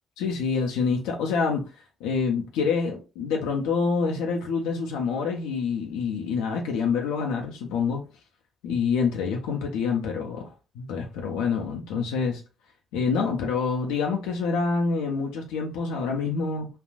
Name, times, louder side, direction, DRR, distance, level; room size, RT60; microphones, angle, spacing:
voice 1, 0.2-1.6 2.0-8.0 8.6-12.4 12.9-16.7, left 5 dB, 80° left, 0.5 m, -27 dB
3.3 x 2.4 x 2.2 m
hypercardioid pair, 55°, 0 cm